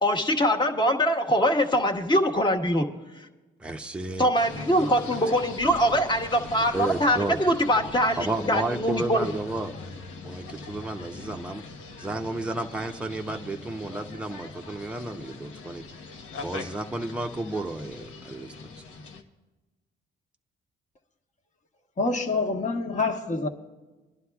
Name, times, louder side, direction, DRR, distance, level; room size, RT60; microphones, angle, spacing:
voice 1, 0.0-2.9 4.2-9.3, equal, 20° left, 1.4 m, -23 dB
voice 2, 3.6-4.3 4.5-5.2 6.7-7.4 8.2-9.7 10.2-11.6 12.0-15.8 16.4-18.8, right 2 dB, 5° right, 0.7 m, -32 dB
sound 1, 4.3-19.2, left 4 dB, 80° left, 1.2 m, -41 dB
voice 3, 22.0-23.5, left 3 dB, 40° left, 1.3 m, -26 dB
24.5 x 11.0 x 2.4 m
cardioid pair, 90°, 20 cm